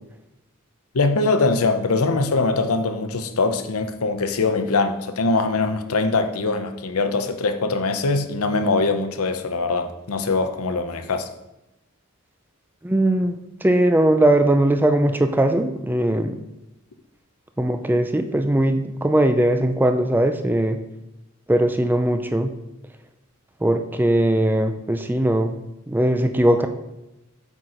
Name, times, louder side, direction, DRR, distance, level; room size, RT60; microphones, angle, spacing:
voice 1, 0.9-11.3, left 3 dB, 90° left, 8 dB, 0.7 m, -22 dB
voice 2, 12.8-16.4 17.6-20.8 21.5-22.5 23.6-26.7, right 1 dB, 10° right, 7 dB, 0.4 m, -20 dB
8.2 x 4.4 x 5.0 m, 0.93 s
head